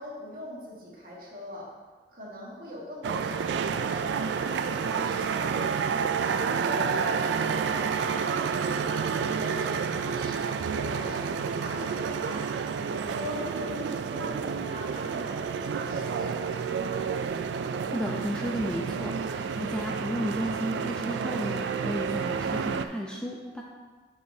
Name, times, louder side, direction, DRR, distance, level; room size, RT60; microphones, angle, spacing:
voice 1, 0.0-1.7 2.1-5.7 6.2-12.5 12.8-16.6, equal, 55° right, -5 dB, 1.8 m, -41 dB
sound 1, 3.0-22.9, right 6 dB, 85° right, 0.3 m, -30 dB
voice 2, 17.9-23.6, equal, 5° left, -2 dB, 0.5 m, -33 dB
9.8 x 4.8 x 2.8 m, 1.4 s
head